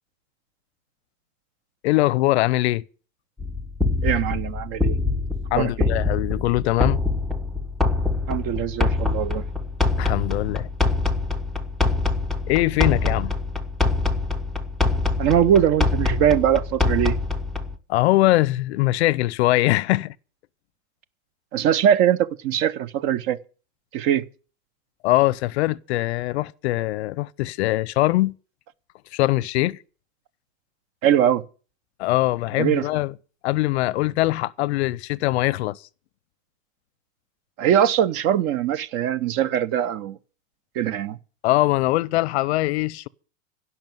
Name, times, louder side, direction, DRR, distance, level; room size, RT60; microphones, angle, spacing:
voice 1, 1.8-2.8 5.5-7.0 10.0-10.7 12.5-13.3 17.9-20.1 25.0-28.3 29.1-29.8 32.0-33.1 33.4-35.8 41.4-43.1, left 18 dB, 55° left, 0.6 m, -22 dB
sound 1, 3.4-17.8, left 3 dB, ahead, 0.6 m, -24 dB
voice 2, 4.0-4.9 5.5-5.7 8.3-9.4 15.2-17.2 21.5-23.4 23.9-24.3 31.0-31.4 32.6-32.9 37.6-40.2 40.7-41.2, right 9 dB, 35° right, 0.8 m, -21 dB
16.5 x 6.1 x 9.2 m
supercardioid pair, 150°, 39 cm